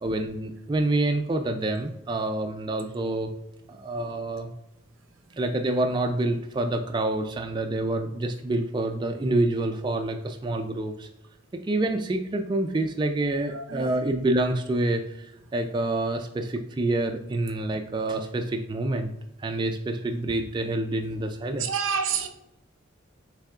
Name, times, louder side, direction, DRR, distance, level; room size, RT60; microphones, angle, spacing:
voice 1, 0.0-3.3 3.7-4.5 5.4-11.1 11.5-19.1 19.4-21.8, right 2 dB, 25° right, 0.3 m, -27 dB
voice 2, 13.5-13.9 21.6-22.3, right 6 dB, 90° right, 0.7 m, -28 dB
6.4 x 3.3 x 2.4 m
head